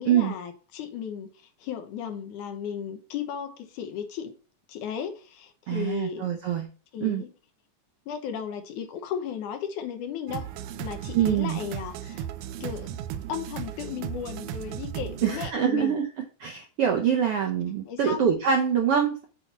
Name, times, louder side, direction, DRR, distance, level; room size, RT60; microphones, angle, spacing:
voice 1, 0.0-4.3 4.7-6.3 6.9-7.3 8.1-10.5 10.8-12.3 12.6-12.9 13.3-16.0 17.9-18.3, left 8 dB, 80° left, 2.5 m, -35 dB
voice 2, 5.7-6.7 7.0-7.2 11.1-11.6 15.2-16.1 16.4-19.2, right 8 dB, 70° right, 1.4 m, -24 dB
sound 1, 10.3-15.5, right 10 dB, 85° right, 2.1 m, -36 dB
7.7 x 4.3 x 4.2 m
omnidirectional pair, 3.5 m